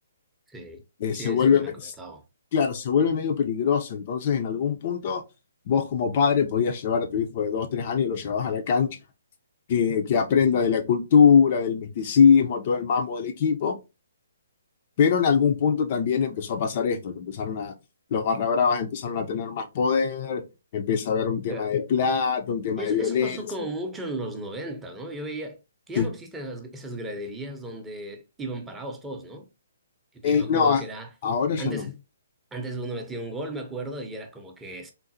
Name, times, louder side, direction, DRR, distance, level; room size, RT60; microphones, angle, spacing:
voice 1, 0.5-0.8 1.1-2.2 21.5-21.7 22.8-25.6 25.9-29.5 30.1-31.1 31.6-31.9 32.5-34.9, right 1 dB, 10° right, 0.6 m, -35 dB
voice 2, 1.0-1.9 2.5-5.2 5.7-8.9 9.7-13.8 15.0-17.7 18.1-20.4 20.7-23.4 26.0-26.1 30.2-30.8 31.2-31.8, left 6 dB, 45° left, 0.4 m, -23 dB
3.7 x 2.0 x 2.6 m
hypercardioid pair, 145°, 0 cm